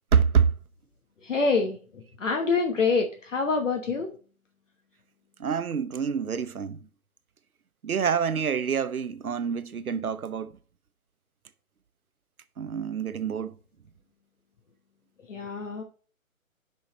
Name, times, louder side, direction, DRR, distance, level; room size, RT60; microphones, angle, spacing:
voice 1, 0.1-0.5 5.4-6.8 7.8-10.5 12.6-13.6, right 7 dB, 90° right, 0.8 m, -26 dB
voice 2, 1.2-4.1 15.3-15.8, left 4 dB, 60° left, 1.2 m, -26 dB
8.7 x 5.6 x 3.1 m
figure-of-eight pair, 160°, 42 cm